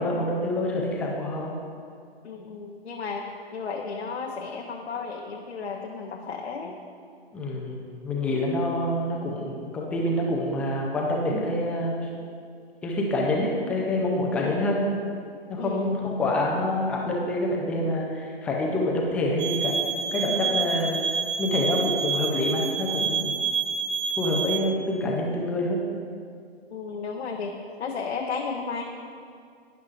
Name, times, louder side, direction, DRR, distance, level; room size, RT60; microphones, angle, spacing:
voice 1, 0.0-1.5 7.3-12.1 12.8-14.8 15.5-19.8 20.1-21.0 21.4-23.4 24.2-25.8, left 1 dB, 5° left, -2 dB, 0.4 m, -26 dB
voice 2, 2.2-6.8 14.4-14.6 15.6-16.0 26.7-27.5 27.8-28.8, left 5 dB, 80° left, 1 dB, 0.9 m, -33 dB
sound 1, 19.4-24.6, right 6 dB, 50° right, 0.8 m, -28 dB
12.0 x 9.4 x 2.4 m, 2.3 s
hypercardioid pair, 130°, 32 cm